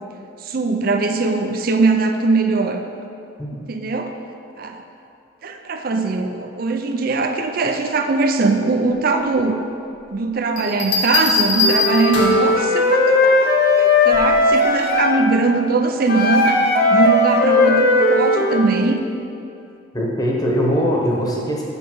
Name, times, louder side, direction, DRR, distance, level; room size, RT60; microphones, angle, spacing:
voice 1, 0.4-2.8 3.7-4.1 4.6-4.8 5.4-9.6 10.1-13.3 13.8-16.6 16.9-19.0, right 3 dB, 50° right, 5 dB, 0.5 m, -20 dB
Bell, 10.6-12.5 14.1-14.5, left 4 dB, 70° left, 1.6 m, -21 dB
Wind instrument woodwind instrument, 11.6-15.2 16.1-18.7, left 2 dB, 50° left, 0.7 m, -17 dB
voice 2, 19.9-21.6, equal, 20° left, -2 dB, 1.1 m, -21 dB
7.1 x 5.2 x 6.2 m, 2.6 s
head